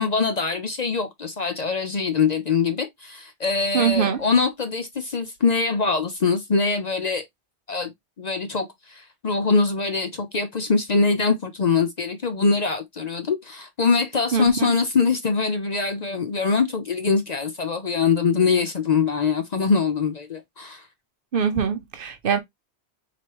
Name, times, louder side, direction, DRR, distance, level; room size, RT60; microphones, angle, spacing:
voice 1, 0.0-7.2 7.7-7.9 8.2-20.9, left 4 dB, 50° left, 0.6 m, -23 dB
voice 2, 3.7-4.2 14.3-14.5 21.3-22.4, right 7 dB, 60° right, 0.8 m, -22 dB
4.5 x 3.0 x 2.9 m
omnidirectional pair, 1.1 m